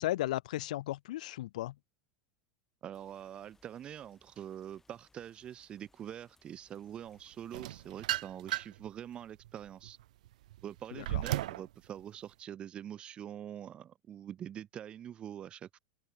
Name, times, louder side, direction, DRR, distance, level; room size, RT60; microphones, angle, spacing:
voice 1, 0.0-1.7 10.9-11.2, left 15 dB, 85° left, 0.4 m, -35 dB
voice 2, 2.8-10.0 10.6-15.8, right 10 dB, 25° right, 1.0 m, -45 dB
sound 1, 2.9-7.9, left 3 dB, 10° left, 3.9 m, -70 dB
sound 2, 7.5-8.9 9.4-11.7, right 15 dB, 85° right, 0.4 m, -35 dB
supercardioid pair, 150°, 4 cm